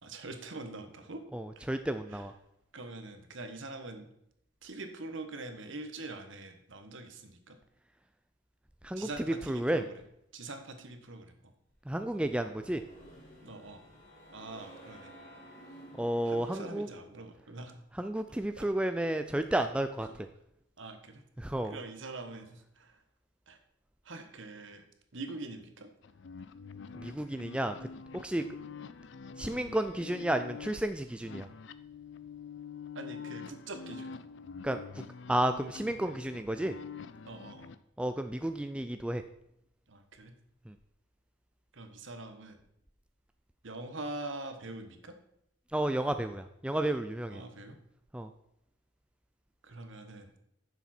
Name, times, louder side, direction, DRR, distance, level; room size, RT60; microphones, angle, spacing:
voice 1, 0.0-1.2 2.1-2.3 2.7-4.1 4.6-7.6 9.0-9.9 10.3-11.5 13.4-13.8 14.3-15.1 16.2-17.8 18.6-19.0 19.6-19.7 20.0-20.2 20.8-21.2 21.6-23.0 23.5-23.6 24.0-24.8 25.1-25.9 28.4-28.5 32.9-34.1 37.2-37.7 39.9-40.3 41.7-42.6 43.6-45.1 47.3-47.8 49.6-50.3, right 2 dB, 65° right, 7 dB, 1.2 m, -44 dB
voice 2, 1.3-2.3 8.8-9.8 11.9-12.8 16.0-16.9 18.0-20.3 21.4-21.8 26.9-27.8 28.1-28.4 29.4-31.5 34.6-35.0 35.3-36.8 38.0-39.2 40.7-40.8 45.7-47.4 48.1-48.3, right 1 dB, 5° right, 8 dB, 0.3 m, -32 dB
sound 1, 12.0-17.3, equal, 35° left, 2.3 m, -52 dB
sound 2, 26.0-37.8, left 6 dB, 60° left, 0.4 m, -46 dB
10.0 x 7.1 x 4.3 m, 0.78 s
head